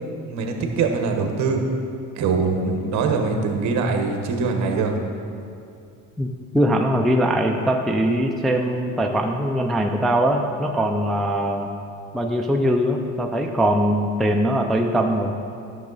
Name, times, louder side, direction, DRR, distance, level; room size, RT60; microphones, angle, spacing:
voice 1, 0.2-1.6 2.2-4.9, right 4 dB, 60° right, 4 dB, 1.1 m, -23 dB
voice 2, 6.5-11.7 12.1-15.3, equal, ahead, 2 dB, 0.3 m, -21 dB
11.5 x 6.4 x 4.0 m, 2.4 s
cardioid pair, 150°, 31 cm